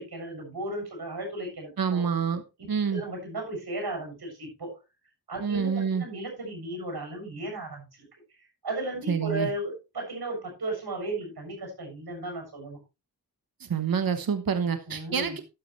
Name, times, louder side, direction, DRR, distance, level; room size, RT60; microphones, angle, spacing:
voice 1, 0.0-2.0 2.9-4.8 5.3-8.1 8.6-12.8 14.9-15.4, right 1 dB, 85° right, 2 dB, 7.3 m, -35 dB
voice 2, 1.8-2.4 2.7-3.0 5.4-6.0 9.1-9.5 13.6-15.4, right 6 dB, 65° right, 9 dB, 1.2 m, -27 dB
12.5 x 9.5 x 3.2 m, 0.27 s
wide cardioid pair, 95°, 37 cm